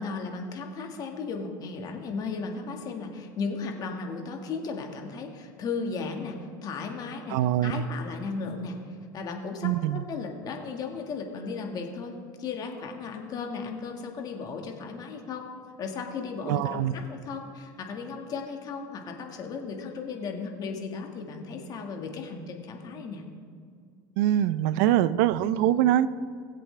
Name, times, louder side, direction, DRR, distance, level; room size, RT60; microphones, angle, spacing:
voice 1, 0.0-15.5 15.8-23.2, left 4 dB, 40° left, 3 dB, 1.6 m, -35 dB
voice 2, 7.3-7.9 9.6-10.0 16.5-16.9 24.2-26.1, right 12 dB, 75° right, 17 dB, 0.5 m, -23 dB
20.5 x 7.7 x 3.3 m, 2.2 s
supercardioid pair, 120°, 10 cm